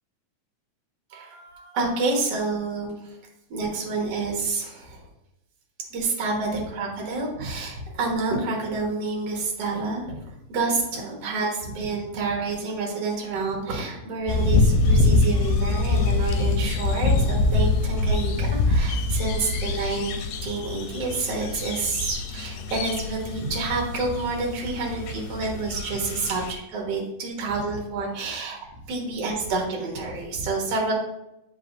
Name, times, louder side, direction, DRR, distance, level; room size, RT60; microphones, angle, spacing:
voice 1, 1.1-3.2 3.5-5.0 5.9-10.2 10.5-20.1 20.4-28.6 28.9-30.9, right 3 dB, 55° right, -2 dB, 2.3 m, -28 dB
sound 1, 14.3-26.5, left 3 dB, 90° left, 2.2 m, -24 dB
8.2 x 5.2 x 2.6 m, 0.87 s
omnidirectional pair, 3.7 m